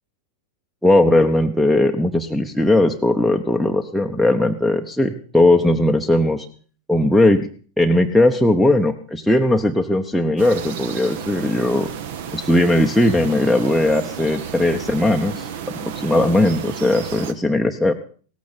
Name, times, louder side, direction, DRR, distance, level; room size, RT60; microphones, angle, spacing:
voice 1, 0.8-6.5 6.9-7.5 7.8-11.9 12.3-15.5 15.8-17.9, left 1 dB, ahead, 8 dB, 0.9 m, -18 dB
sound 1, 10.4-17.3, right 8 dB, 55° right, 1.1 m, -32 dB
17.0 x 14.5 x 4.2 m, 0.42 s
figure-of-eight pair, 90°, 0 cm